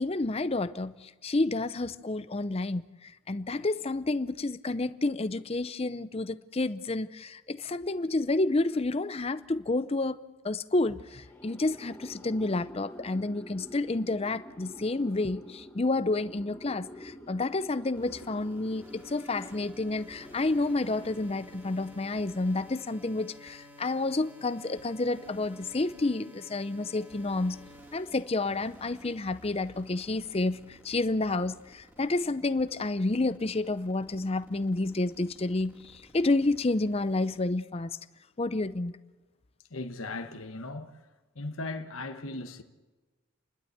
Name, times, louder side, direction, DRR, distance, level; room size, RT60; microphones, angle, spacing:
voice 1, 0.0-10.2 10.4-27.6 27.9-38.0 38.4-38.9, left 2 dB, 25° left, 0.6 m, -30 dB
sound 1, 11.1-22.2, equal, 10° left, 1.7 m, -49 dB
sound 2, 18.0-37.4, equal, 10° right, 2.4 m, -52 dB
voice 2, 39.7-41.0 41.3-42.6, left 2 dB, 70° left, 1.3 m, -37 dB
30.0 x 12.0 x 8.0 m
head